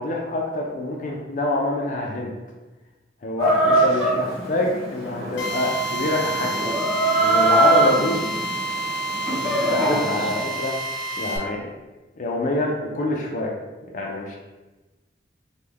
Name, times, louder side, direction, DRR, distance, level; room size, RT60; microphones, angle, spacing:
voice 1, 0.0-2.3 3.2-6.5 7.2-8.2 9.3-9.4 9.7-10.7 11.2-11.7 12.2-13.5 13.9-14.4, left 2 dB, 45° left, -1 dB, 0.4 m, -26 dB
Chicken rooster, 3.4-10.4, right 2 dB, ahead, 1.1 m, -23 dB
Drill, 5.4-11.4, right 2 dB, 85° left, 0.6 m, -29 dB
3.1 x 2.1 x 3.5 m, 1.2 s
head